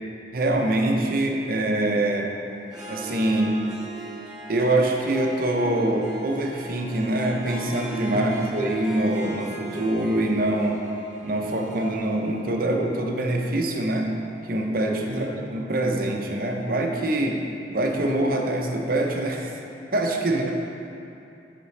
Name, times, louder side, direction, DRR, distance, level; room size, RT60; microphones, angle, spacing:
voice 1, 0.3-2.3 2.9-3.6 4.5-10.8 11.2-14.1 14.5-17.4 17.7-19.6 19.9-20.5, right 1 dB, 55° right, 1 dB, 0.8 m, -24 dB
Harp, 2.6-14.5, right 1 dB, 5° right, 1.9 m, -39 dB
voice 2, 8.1-8.6 15.1-15.5, equal, 90° right, 0 dB, 0.9 m, -34 dB
10.5 x 6.1 x 3.3 m, 2.7 s
head